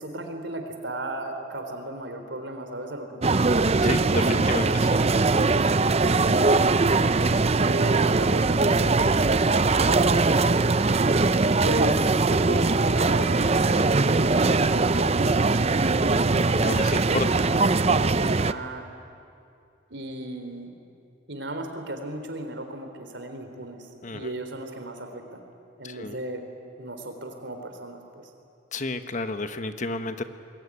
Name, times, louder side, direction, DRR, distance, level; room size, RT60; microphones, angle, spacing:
voice 1, 0.0-3.6 4.3-4.9 6.0-6.7 7.6-10.7 11.6-17.9 18.2-18.9 19.9-20.7 21.3-25.4 25.8-26.4 26.8-28.0, right 1 dB, 65° right, 6 dB, 3.6 m, -35 dB
sound 1, 3.2-18.5, right 3 dB, 35° right, 0.6 m, -21 dB
voice 2, 3.8-4.9 16.5-17.3 24.0-24.3 25.8-26.2 28.7-30.2, left 2 dB, 40° left, 9 dB, 1.2 m, -31 dB
27.5 x 21.5 x 9.8 m, 2.6 s
head